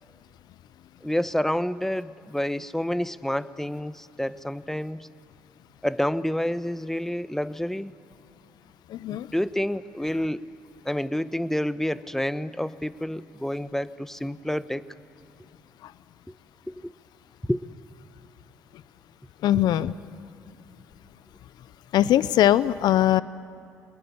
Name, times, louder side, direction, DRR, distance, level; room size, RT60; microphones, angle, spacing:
voice 1, 1.0-5.1 5.8-7.9 9.1-10.4 10.8-14.8 16.7-16.9 17.5-17.7, left 1 dB, 5° left, 15 dB, 1.0 m, -28 dB
voice 2, 8.9-9.3 15.8-15.9 19.4-19.9 21.9-23.2, left 12 dB, 70° left, 17 dB, 0.6 m, -21 dB
26.5 x 20.0 x 9.8 m, 2.5 s
hypercardioid pair, 55°, 7 cm